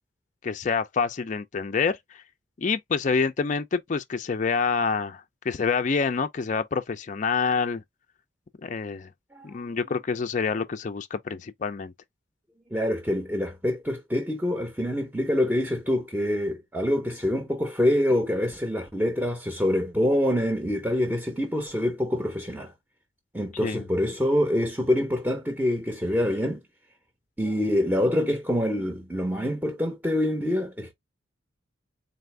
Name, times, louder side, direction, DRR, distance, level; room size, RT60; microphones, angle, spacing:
voice 1, 0.4-2.2 2.6-7.8 8.6-9.1 9.4-11.9 23.6-23.9, left 5 dB, 40° left, 0.4 m, -27 dB
voice 2, 12.7-22.7 23.3-26.6 27.4-30.9, left 1 dB, 10° right, 0.6 m, -25 dB
4.1 x 2.5 x 3.2 m
head